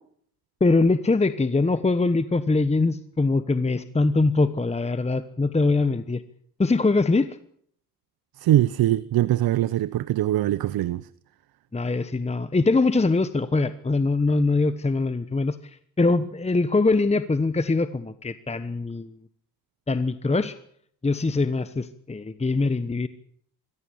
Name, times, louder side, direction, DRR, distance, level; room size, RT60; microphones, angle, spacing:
voice 1, 0.6-6.2 6.6-7.4 11.7-19.2 19.9-20.5 21.0-23.1, left 3 dB, 15° left, 1.1 m, -23 dB
voice 2, 8.4-11.1, right 13 dB, 75° right, 0.8 m, -22 dB
23.5 x 16.5 x 8.6 m
cardioid pair, 80°, 37 cm